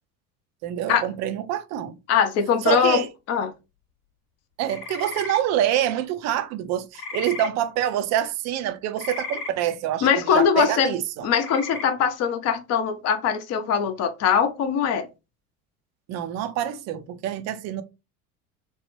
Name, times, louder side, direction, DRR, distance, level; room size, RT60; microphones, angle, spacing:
voice 1, 0.6-2.0 2.6-3.1 4.6-10.1 10.3-11.3 16.1-17.8, right 11 dB, 40° right, 0.4 m, -26 dB
voice 2, 2.1-3.5 10.0-10.9 11.2-15.1, left 7 dB, 35° left, 0.6 m, -22 dB
sound 1, 4.6-5.4 6.9-7.5 9.0-9.5 11.3-11.8, left 4 dB, 75° left, 0.7 m, -34 dB
3.0 x 2.1 x 2.9 m
figure-of-eight pair, 70°, 44 cm